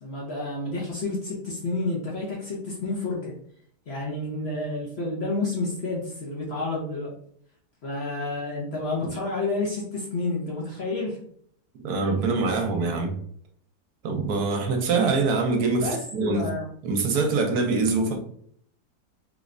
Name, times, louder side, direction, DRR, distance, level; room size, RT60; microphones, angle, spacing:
voice 1, 0.0-3.3 3.9-7.2 7.8-11.2 15.8-16.7, left 2 dB, 50° left, 0.8 m, -30 dB
voice 2, 11.8-13.2 14.0-16.5 16.8-18.2, right 3 dB, 70° right, 1.1 m, -24 dB
3.2 x 3.1 x 2.5 m
omnidirectional pair, 1.7 m